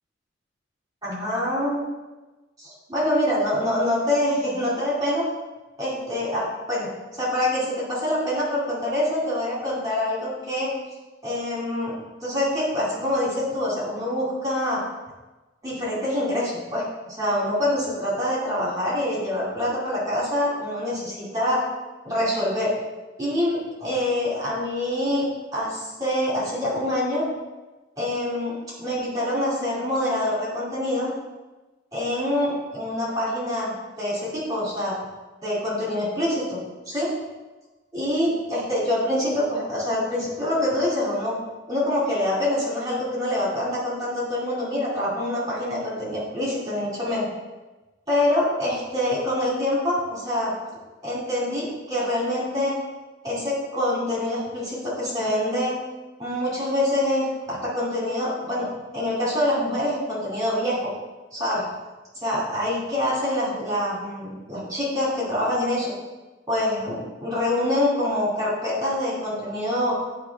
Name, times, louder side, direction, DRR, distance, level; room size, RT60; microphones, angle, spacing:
voice 1, 1.0-1.8 2.6-5.2 5.8-6.9 7.2-10.7 11.2-11.9 12.2-14.8 15.6-21.7 22.0-22.7 23.2-27.2 28.0-31.1 31.9-35.0 35.4-36.6 36.9-37.1 37.9-41.3 41.7-47.3 48.1-50.5 51.0-52.8 53.2-55.8 56.2-60.9 61.3-61.6 62.1-65.9 66.5-70.0, left 1 dB, 20° right, -7 dB, 2.5 m, -25 dB
9.6 x 3.2 x 4.6 m, 1.2 s
head